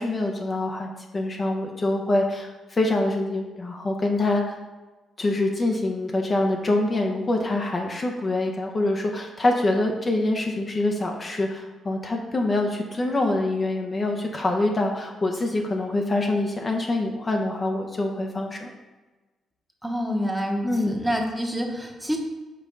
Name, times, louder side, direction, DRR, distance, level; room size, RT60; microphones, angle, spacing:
voice 1, 0.0-4.6 5.2-18.7 20.6-21.0, left 2 dB, 30° left, 2 dB, 0.7 m, -25 dB
voice 2, 19.8-22.2, equal, 5° right, 2 dB, 1.0 m, -27 dB
5.5 x 3.6 x 5.3 m, 1.2 s
cardioid pair, 90°, 0 cm